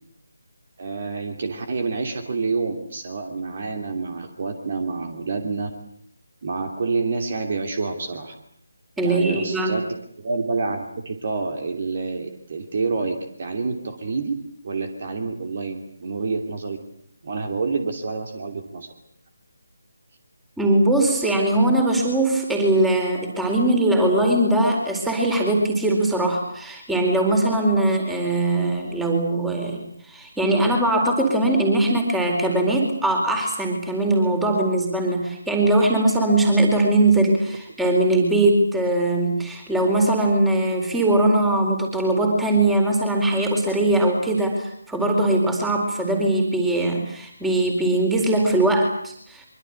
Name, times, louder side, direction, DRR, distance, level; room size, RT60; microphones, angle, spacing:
voice 1, 0.8-5.7 6.4-8.3 9.0-9.8 10.2-14.4 14.6-16.8 17.2-18.9, right 4 dB, 40° right, 6 dB, 2.9 m, -28 dB
voice 2, 9.0-9.8 20.6-49.4, right 2 dB, 5° right, 2 dB, 4.3 m, -21 dB
24.5 x 24.0 x 8.3 m, 0.66 s
figure-of-eight pair, 150°, 0 cm